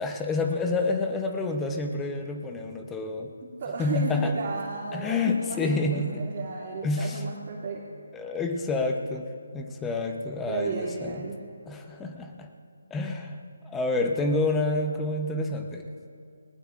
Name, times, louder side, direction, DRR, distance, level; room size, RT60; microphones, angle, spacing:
voice 1, 0.0-3.3 3.8-4.3 4.9-6.3 6.8-7.2 8.1-9.3 9.5-11.2 11.7-12.5 12.9-13.4 13.6-15.9, left 3 dB, 10° left, 4 dB, 0.9 m, -28 dB
voice 2, 3.4-7.8 10.4-11.4, right 4 dB, 40° right, -7 dB, 2.6 m, -33 dB
21.0 x 19.0 x 2.6 m, 2.4 s
figure-of-eight pair, 160°, 0 cm